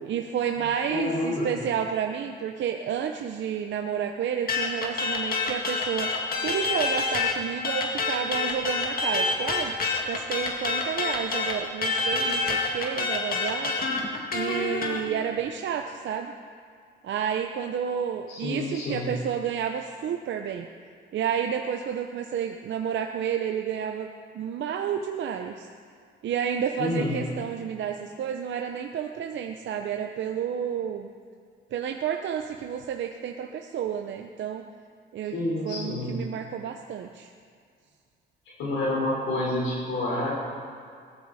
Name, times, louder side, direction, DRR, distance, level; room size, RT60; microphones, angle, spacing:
voice 1, 0.0-6.1 6.4-9.7 10.1-13.7 14.3-16.3 17.0-20.7 21.1-25.7 26.2-31.1 31.7-34.6 35.1-35.4 35.6-37.3, right 8 dB, 70° right, 4 dB, 0.8 m, -30 dB
voice 2, 0.9-1.6 18.3-19.1 26.8-27.2 35.3-36.2 38.6-40.3, left 2 dB, 85° left, -5 dB, 4.2 m, -28 dB
sound 1, 4.5-7.4 7.6-15.0, left 3 dB, 50° left, 2.2 m, -27 dB
18.0 x 14.0 x 4.2 m, 2.2 s
cardioid pair, 90°, 20 cm